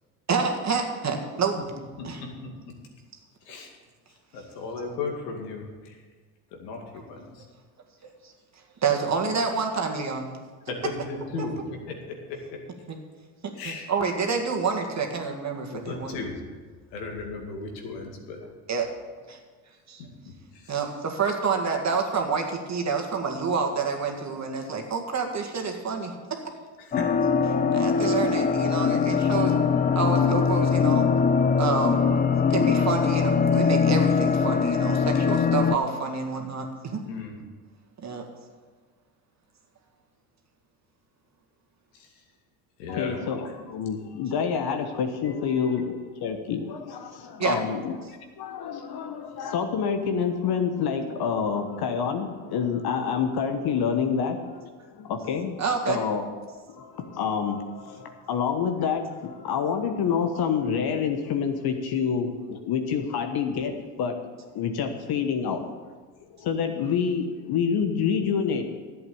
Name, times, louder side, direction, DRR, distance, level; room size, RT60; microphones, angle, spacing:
voice 1, 0.3-1.5 2.0-2.2 8.8-10.3 12.9-13.0 13.7-16.2 18.7-18.9 19.3-19.4 19.9-20.0 20.7-26.1 27.7-29.5 30.0-31.1 31.6-32.0 32.5-37.0 38.0-38.3 47.4-47.6 55.6-56.0, right 5 dB, 35° right, 3 dB, 2.1 m, -28 dB
voice 2, 4.3-6.0 6.5-7.4 10.7-11.9 13.5-13.9 15.7-16.3 16.9-18.4 20.5-20.9 26.8-27.0 37.1-37.3 41.9-42.1 42.8-43.5 45.2-45.8, left 4 dB, 80° left, 1 dB, 2.4 m, -36 dB
sound 1, 26.9-35.8, left 6 dB, 20° left, 0.6 m, -22 dB
voice 3, 42.9-56.3 56.7-64.3 64.5-65.8 66.3-68.8, left 6 dB, 50° left, 5 dB, 1.2 m, -28 dB
11.5 x 8.1 x 7.0 m, 1.4 s
hypercardioid pair, 75°, 49 cm